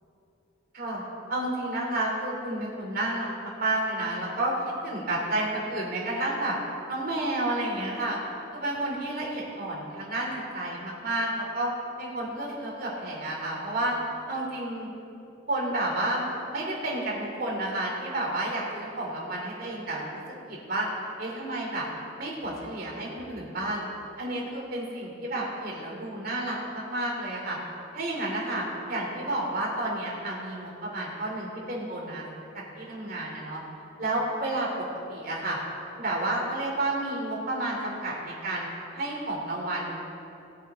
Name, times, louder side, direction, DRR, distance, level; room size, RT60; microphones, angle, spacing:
voice 1, 1.3-3.3 3.5-4.5 4.8-6.6 6.9-8.2 8.5-11.7 12.0-14.0 14.3-14.9 15.5-16.2 16.5-20.2 20.5-20.9 21.2-21.8 22.2-23.8 24.2-27.6 27.9-32.3 32.7-33.6 34.0-35.6 36.0-38.7 38.9-40.2, right 1 dB, 50° right, -3 dB, 2.8 m, -31 dB
19.0 x 8.2 x 4.0 m, 2.8 s
head